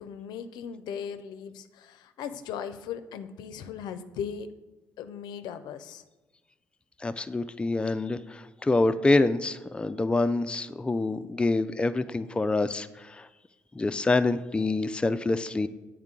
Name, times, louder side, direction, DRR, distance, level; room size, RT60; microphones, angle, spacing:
voice 1, 0.0-4.5 5.0-6.0, left 7 dB, 75° left, 10 dB, 0.5 m, -38 dB
voice 2, 7.0-13.3 13.8-15.7, left 2 dB, 15° left, 11 dB, 0.3 m, -26 dB
7.9 x 4.5 x 3.7 m, 1.2 s
supercardioid pair, 65°, 7 cm